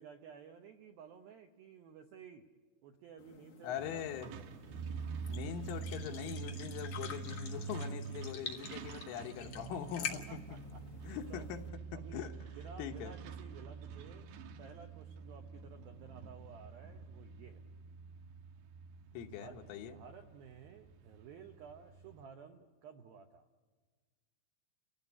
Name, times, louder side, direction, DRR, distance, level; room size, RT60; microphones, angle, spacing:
voice 1, 0.0-2.5 2.8-4.4 10.0-10.8 11.3-11.5 11.9-12.3 12.5-14.3 14.6-17.6 19.3-23.5, right 6 dB, 90° right, 6 dB, 2.1 m, -54 dB
sound 1, 3.2-11.7, left 7 dB, 60° left, 2.0 m, -48 dB
voice 2, 3.6-4.3 5.3-10.4 11.0-11.6 11.9-12.3 12.8-13.1 19.2-20.0, left 9 dB, 85° left, 5 dB, 3.7 m, -42 dB
Truck, 3.8-22.2, right 5 dB, 75° right, 2.6 m, -46 dB
29.5 x 16.0 x 9.8 m, 1.5 s
omnidirectional pair, 5.6 m